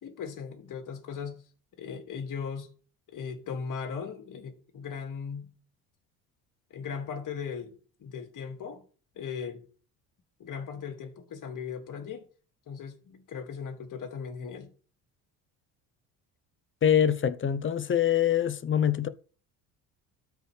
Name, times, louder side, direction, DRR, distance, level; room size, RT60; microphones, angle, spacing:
voice 1, 0.0-1.4 1.8-2.7 3.1-5.5 6.7-7.7 8.0-8.8 9.2-9.6 10.4-12.2 12.7-14.7, left 6 dB, 50° left, 2.1 m, -38 dB
voice 2, 16.8-19.1, left 9 dB, 30° left, 0.7 m, -24 dB
13.0 x 4.8 x 3.3 m
supercardioid pair, 95°, 40 cm